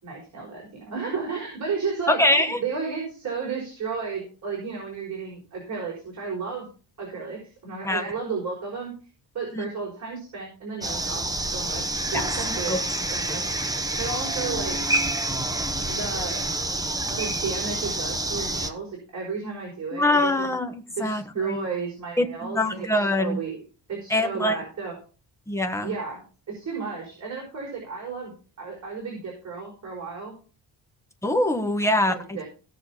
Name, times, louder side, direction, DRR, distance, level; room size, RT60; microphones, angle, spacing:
voice 1, 0.0-6.7 7.0-8.9 9.3-12.8 13.1-13.5 14.0-14.8 15.9-16.5 17.1-20.5 21.0-23.6 23.9-25.0 25.8-30.3 31.8-32.4, right 5 dB, 40° right, -3 dB, 5.2 m, -33 dB
voice 2, 2.1-2.6 7.8-8.0 9.5-9.7 12.1-12.2 12.7-12.8 19.9-21.6 22.2-23.4 24.1-24.6 25.5-25.9 31.2-32.4, left 1 dB, 5° left, 5 dB, 1.4 m, -24 dB
sound 1, 10.8-18.7, right 2 dB, 10° right, 1.1 m, -28 dB
17.5 x 6.7 x 4.4 m, 0.38 s
cardioid pair, 135°, 41 cm